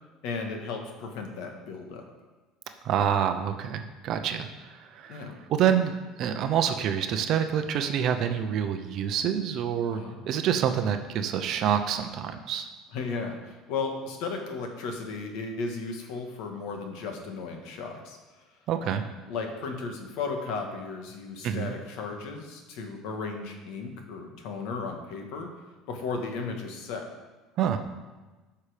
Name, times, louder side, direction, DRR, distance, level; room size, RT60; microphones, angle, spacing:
voice 1, 0.2-2.0 5.1-5.4 9.9-10.3 12.9-18.2 18.8-25.5 25.9-27.1, left 4 dB, 65° left, 3 dB, 1.7 m, -35 dB
voice 2, 2.8-10.0 10.3-12.7 18.7-19.0 21.4-21.7 27.6-27.8, right 9 dB, 40° right, 8 dB, 0.7 m, -27 dB
13.0 x 5.8 x 5.1 m, 1.2 s
cardioid pair, 170°, 0 cm